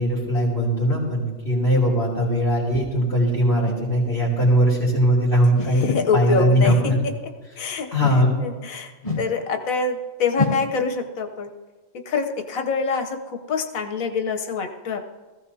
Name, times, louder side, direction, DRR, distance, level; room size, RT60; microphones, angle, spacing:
voice 1, 0.0-7.0 7.9-8.3, equal, 40° left, -7 dB, 3.0 m, -20 dB
sound 1, 1.9-2.0 2.7-2.9 3.7-3.8 4.4-4.6 5.6-5.8 6.6-6.9 8.0-8.3 9.0-9.3 10.4-10.7, left 3 dB, 25° left, 1.8 m, -27 dB
voice 2, 5.6-7.1 7.6-7.9 8.4-8.9 9.2-11.5 12.1-15.0, left 4 dB, 80° left, 6 dB, 1.4 m, -25 dB
18.5 x 15.0 x 2.8 m, 1.3 s
omnidirectional pair, 1.4 m